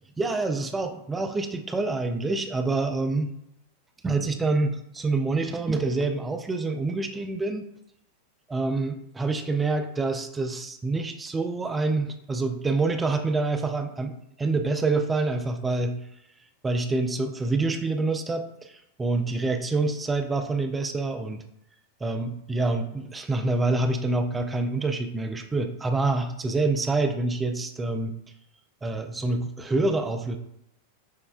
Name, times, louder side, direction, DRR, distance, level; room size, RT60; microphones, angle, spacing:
voice 1, 0.2-3.3 4.0-7.7 8.5-16.0 16.6-21.4 22.0-28.2 28.8-30.4, right 3 dB, 15° right, 6 dB, 0.3 m, -27 dB
6.4 x 2.1 x 2.3 m, 0.77 s
figure-of-eight pair, 90°, 0 cm